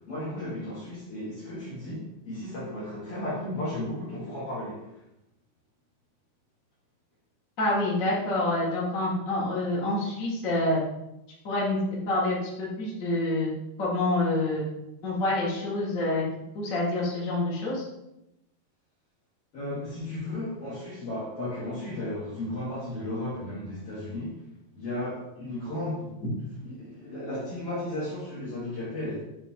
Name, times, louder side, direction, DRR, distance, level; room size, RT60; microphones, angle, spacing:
voice 1, 0.1-4.9 19.5-24.4 24.7-26.2 26.6-29.2, left 1 dB, 55° left, -7 dB, 1.9 m, -34 dB
voice 2, 7.6-10.8 11.4-11.8 12.0-13.5 13.8-14.6 15.0-16.2 16.5-17.8, left 2 dB, 35° left, -5 dB, 1.4 m, -27 dB
7.3 x 3.3 x 4.4 m, 0.89 s
omnidirectional pair, 4.0 m